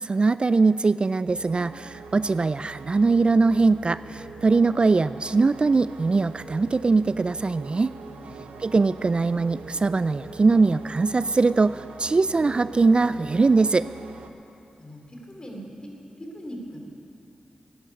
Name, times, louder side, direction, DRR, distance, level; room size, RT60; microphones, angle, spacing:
voice 1, 0.0-7.9 8.6-13.9, right 3 dB, 40° right, 15 dB, 0.3 m, -21 dB
sound 1, 1.3-14.3, right 5 dB, 90° right, 0.8 m, -43 dB
voice 2, 8.1-8.5 14.8-15.9 16.2-16.8, equal, 35° left, 1 dB, 3.3 m, -40 dB
13.0 x 9.9 x 9.6 m, 2.8 s
cardioid pair, 45°, 3 cm